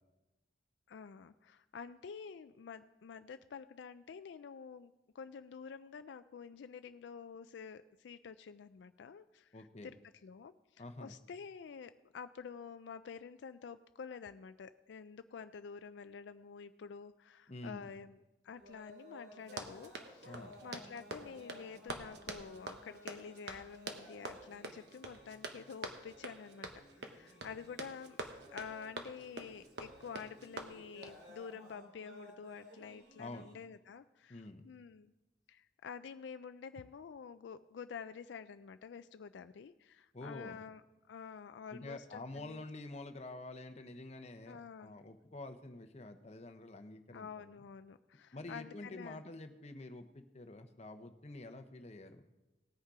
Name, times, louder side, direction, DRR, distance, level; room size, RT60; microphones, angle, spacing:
voice 1, 0.9-20.4 20.6-26.7 27.0-28.2 28.5-35.1 35.5-40.8 41.1-42.6 44.5-45.0 47.1-49.2, left 6 dB, 80° left, 11 dB, 0.4 m, -49 dB
voice 2, 9.5-9.9 10.8-11.1 17.5-17.9 20.2-20.5 33.2-33.5 34.3-34.7 40.1-40.6 41.7-47.5 48.3-52.3, left 2 dB, 35° left, 7 dB, 0.8 m, -48 dB
sound 1, 18.6-33.6, left 1 dB, 85° right, 3.0 m, -57 dB
Run, 19.4-31.2, right 2 dB, 65° right, 1.1 m, -46 dB
18.5 x 6.4 x 4.8 m, 1.0 s
head